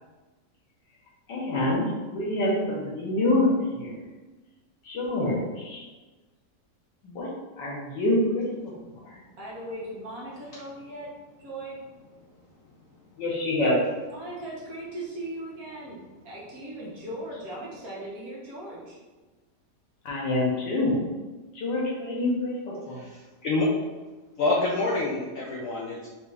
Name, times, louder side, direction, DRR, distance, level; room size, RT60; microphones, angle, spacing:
voice 1, 1.3-1.8 2.1-3.9 4.9-5.8 7.0-7.3 7.6-8.5 13.2-13.8 20.1-20.9 21.6-23.0, left 1 dB, 85° left, -4 dB, 1.8 m, -26 dB
voice 2, 9.4-11.1 11.4-11.8 14.1-16.0 16.2-19.0, right 1 dB, 55° right, -5 dB, 1.5 m, -38 dB
voice 3, 22.9-23.7 24.4-26.1, left 2 dB, 65° left, -3 dB, 0.8 m, -27 dB
5.2 x 2.6 x 3.3 m, 1.2 s
omnidirectional pair, 1.9 m